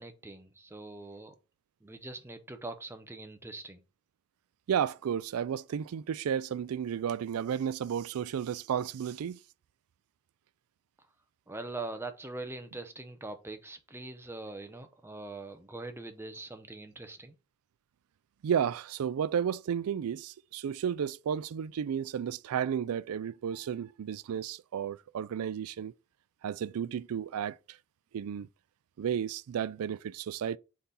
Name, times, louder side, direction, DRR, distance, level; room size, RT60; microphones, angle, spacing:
voice 1, 0.0-1.3 1.8-3.8 11.5-17.3, right 2 dB, 10° right, 0.6 m, -42 dB
voice 2, 4.7-9.4 18.4-25.9 26.4-27.6 28.1-28.5 29.0-30.6, right 8 dB, 75° right, 0.3 m, -32 dB
5.9 x 4.1 x 3.9 m
head